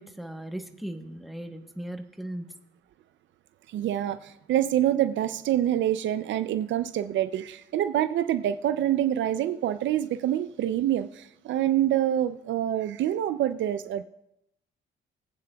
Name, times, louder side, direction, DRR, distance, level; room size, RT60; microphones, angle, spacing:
voice 1, 0.0-2.5, right 1 dB, ahead, 4 dB, 1.1 m, -37 dB
voice 2, 3.7-14.1, right 11 dB, 70° right, 12 dB, 0.5 m, -26 dB
20.0 x 8.5 x 2.3 m, 0.81 s
cardioid pair, 90°, 20 cm